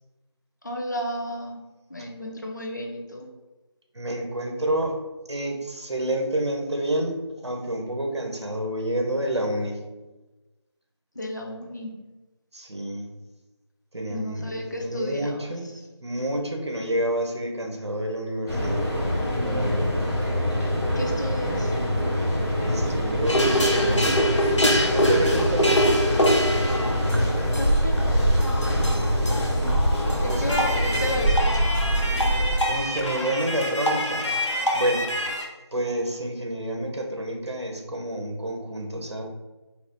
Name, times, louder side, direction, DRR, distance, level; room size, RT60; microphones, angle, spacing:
voice 1, 0.6-1.6 1.9-3.3 11.1-11.9 14.1-15.5 21.0-21.7 26.8-28.2 30.2-31.7, equal, 40° left, 1 dB, 0.7 m, -33 dB
voice 2, 3.9-4.9 5.3-7.2 7.4-9.8 12.5-13.1 13.9-15.7 16.0-18.8 19.4-19.9 22.6-25.8 29.1-29.6 30.3-30.5 32.7-34.3 34.7-35.1 35.7-39.2, right 1 dB, 70° right, 2 dB, 1.1 m, -29 dB
Mechanical fan, 18.5-32.5, equal, 5° right, 1.3 m, -24 dB
sound 1, 23.2-35.4, equal, 90° left, 1.0 m, -25 dB
4.1 x 2.9 x 3.9 m, 1.1 s
figure-of-eight pair, 175°, 15 cm